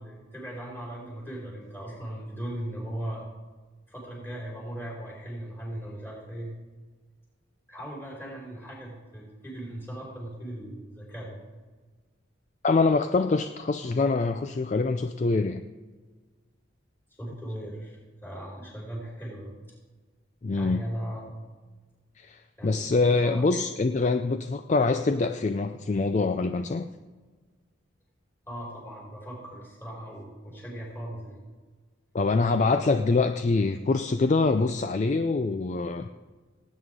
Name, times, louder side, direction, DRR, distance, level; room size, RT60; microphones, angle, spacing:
voice 1, 0.0-3.2 3.9-6.5 7.7-11.4 17.2-19.5 20.6-21.4 22.6-23.0 23.2-23.6 28.5-31.4, right 1 dB, 10° left, -4 dB, 4.5 m, -38 dB
voice 2, 12.6-15.6 20.4-20.8 22.2-26.9 32.1-36.1, left 3 dB, 35° left, 8 dB, 0.4 m, -25 dB
18.5 x 9.3 x 3.7 m, 1.4 s
head